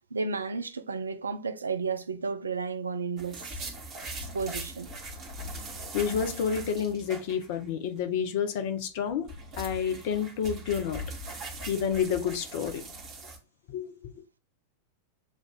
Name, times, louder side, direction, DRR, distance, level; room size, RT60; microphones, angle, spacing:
voice 1, 0.1-3.7 4.2-4.9, right 4 dB, 75° right, 0.4 m, -33 dB
sound 1, 3.2-7.7 8.0-8.1 9.0-13.4, right 1 dB, 30° right, 1.2 m, -40 dB
voice 2, 5.9-11.0 11.3-12.8 13.7-13.9, left 7 dB, 50° left, 0.7 m, -30 dB
7.2 x 2.5 x 2.3 m
figure-of-eight pair, 90°, 0 cm